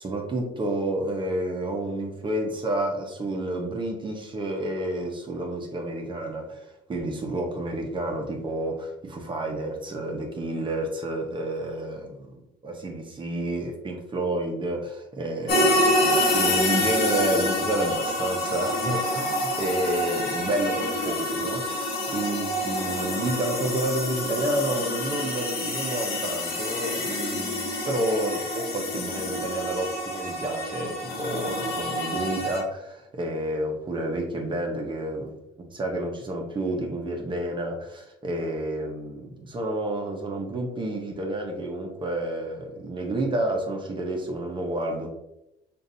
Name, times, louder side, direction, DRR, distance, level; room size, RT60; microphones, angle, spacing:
voice 1, 0.0-35.3 35.7-45.1, right 1 dB, 30° right, 1 dB, 0.8 m, -30 dB
sound 1, 15.5-32.6, left 1 dB, 65° left, 1.2 m, -27 dB
6.5 x 2.6 x 2.7 m, 0.85 s
cardioid pair, 110°, 17 cm